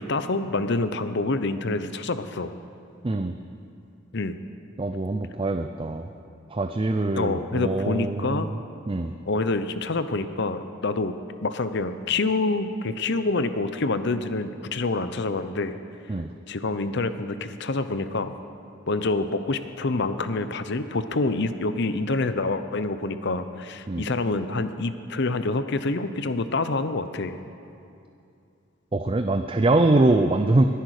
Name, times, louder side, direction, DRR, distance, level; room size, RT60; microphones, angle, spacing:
voice 1, 0.0-2.5 4.1-4.4 7.1-8.5 9.3-11.1 11.4-15.7 16.5-18.3 18.9-27.3, left 3 dB, 55° left, 11 dB, 0.8 m, -27 dB
voice 2, 4.8-6.1 6.5-8.5 8.9-9.1 16.1-16.3 23.9-24.1 28.9-30.6, right 2 dB, 25° right, 7 dB, 0.5 m, -23 dB
20.5 x 10.5 x 6.5 m, 2.6 s
head